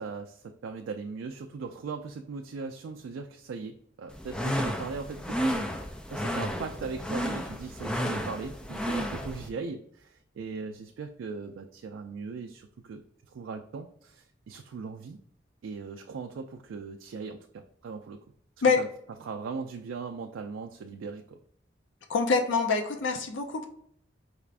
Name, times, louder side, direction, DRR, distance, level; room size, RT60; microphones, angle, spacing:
voice 1, 0.0-13.0 13.3-15.2 15.6-18.2 18.8-18.9 19.2-21.4, right 4 dB, 85° right, 5 dB, 0.3 m, -39 dB
sound 1, 4.1-9.5, equal, 5° left, 0.3 m, -32 dB
voice 2, 22.1-23.7, left 4 dB, 70° left, 4 dB, 0.5 m, -25 dB
4.9 x 2.4 x 3.3 m, 0.68 s
head